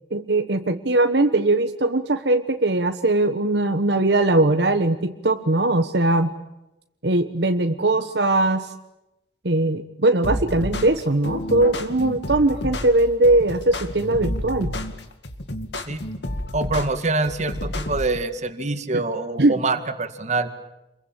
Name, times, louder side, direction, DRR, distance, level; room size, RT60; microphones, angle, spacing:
voice 1, 0.1-6.3 7.0-8.7 9.4-14.7 19.4-19.5, right 2 dB, 70° right, 7 dB, 1.2 m, -20 dB
sound 1, 10.2-18.2, left 1 dB, 75° left, 2.3 m, -30 dB
voice 2, 16.5-20.5, right 3 dB, 40° right, 9 dB, 2.1 m, -25 dB
28.0 x 22.5 x 8.9 m, 0.94 s
head